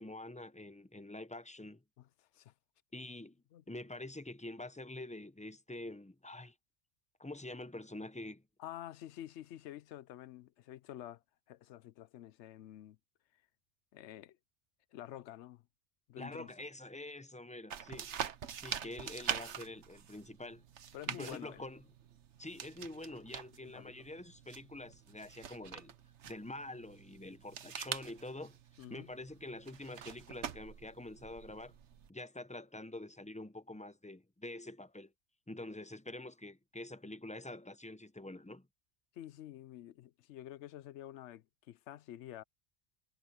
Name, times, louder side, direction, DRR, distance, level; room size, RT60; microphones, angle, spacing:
voice 1, 0.0-1.8 2.9-6.5 7.2-8.4 16.2-18.1 18.6-20.6 21.1-21.8 22.4-25.9 26.3-28.6 28.9-31.7 32.1-35.1 35.5-38.7, left 2 dB, 10° left, 0.4 m, -46 dB
voice 2, 2.0-2.5 3.5-3.6 8.6-13.0 13.3-13.4 13.9-14.4 14.9-15.7 16.1-16.7 20.9-21.7 23.6-24.0 28.8-29.1 39.1-42.4, left 13 dB, 80° left, 0.9 m, -49 dB
sound 1, 17.7-32.1, right 8 dB, 80° right, 1.2 m, -45 dB
omnidirectional pair, 1.2 m